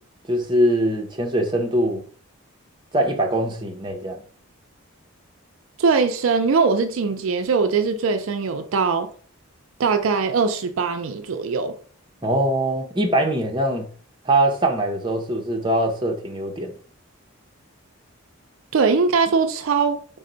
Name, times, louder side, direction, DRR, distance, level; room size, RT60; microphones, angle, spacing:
voice 1, 0.3-2.0 2.9-4.2 12.2-13.9 14.3-16.7, right 1 dB, 20° right, 0.6 m, -22 dB
voice 2, 5.8-9.1 9.8-11.8 18.7-20.0, right 5 dB, 65° right, 0.4 m, -21 dB
4.3 x 2.1 x 3.8 m
head